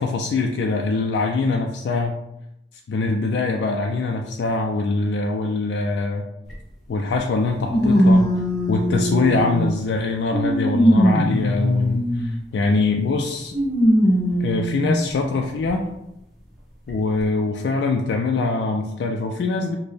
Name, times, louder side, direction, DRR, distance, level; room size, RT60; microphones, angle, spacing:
voice 1, 0.0-2.2 2.9-6.3 6.9-8.2 8.7-13.6 14.4-15.8 16.9-19.8, left 3 dB, 70° left, 1 dB, 0.3 m, -23 dB
sound 1, 6.5-6.6 7.7-9.8 10.3-12.4 13.5-15.0 15.7-15.8 16.9-17.0, equal, ahead, 0.9 m, -19 dB
4.1 x 2.1 x 3.3 m, 0.85 s
head